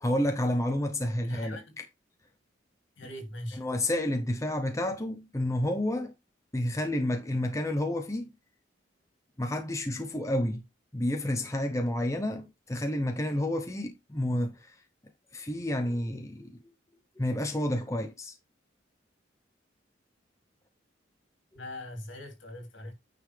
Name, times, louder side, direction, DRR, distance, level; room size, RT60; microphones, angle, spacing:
voice 1, 0.0-1.8 3.6-6.1 6.5-8.3 9.4-10.6 10.9-14.8 15.3-16.5 17.2-18.3, left 1 dB, 15° left, 0.8 m, -30 dB
voice 2, 1.2-1.8 3.0-3.6 21.5-22.9, left 1 dB, 75° left, 3.0 m, -41 dB
9.5 x 5.5 x 3.4 m
head